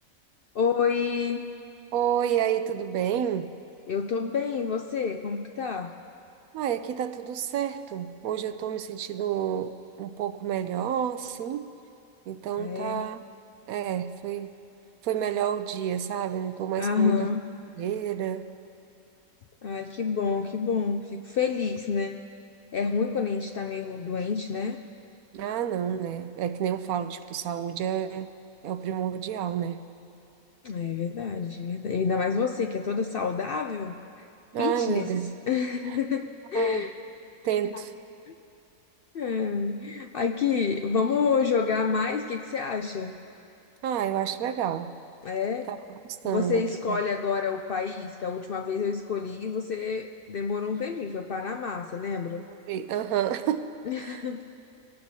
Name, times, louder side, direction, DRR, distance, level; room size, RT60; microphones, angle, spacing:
voice 1, 0.5-1.4 3.9-6.0 12.6-13.1 16.8-17.4 19.6-22.2 22.7-24.8 30.6-33.9 34.6-35.1 35.5-36.9 38.3-38.4 39.1-43.2 45.2-45.7 46.2-52.4 53.9-54.4, left 5 dB, 65° left, 5 dB, 0.5 m, -28 dB
voice 2, 1.9-3.5 6.5-11.7 12.3-13.2 13.7-14.5 15.0-17.3 17.8-18.5 25.3-28.3 28.6-29.8 34.5-35.3 35.8-36.0 36.5-36.8 37.4-37.9 43.8-44.9 45.7-45.8 46.1-47.0 52.5-54.3, right 9 dB, 90° right, 10 dB, 1.1 m, -30 dB
24.0 x 17.5 x 2.8 m, 2.7 s
omnidirectional pair, 1.5 m